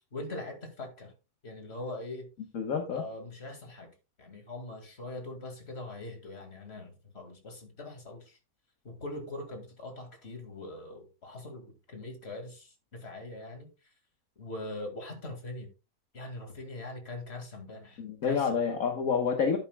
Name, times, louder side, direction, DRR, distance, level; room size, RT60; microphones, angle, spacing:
voice 1, 0.1-1.1 1.4-2.3 2.9-3.9 4.2-8.4 8.8-13.7 14.4-15.7 16.1-18.6, left 2 dB, 40° left, 2.5 m, -42 dB
voice 2, 2.5-3.0 18.0-19.6, left 6 dB, 65° left, 1.6 m, -28 dB
10.5 x 9.4 x 2.3 m
omnidirectional pair, 1.6 m